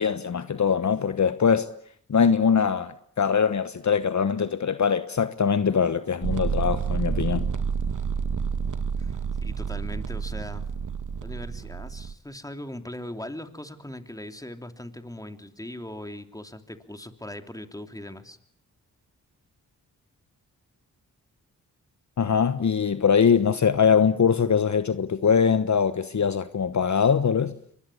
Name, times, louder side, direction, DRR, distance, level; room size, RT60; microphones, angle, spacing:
voice 1, 0.0-1.7 2.1-7.5 22.2-27.5, left 6 dB, 50° left, 1.2 m, -22 dB
sound 1, 6.2-12.1, right 6 dB, 55° right, 1.4 m, -29 dB
voice 2, 9.0-10.7 11.2-18.4, left 1 dB, 10° left, 3.1 m, -40 dB
24.5 x 21.0 x 8.6 m
supercardioid pair, 50°, 36 cm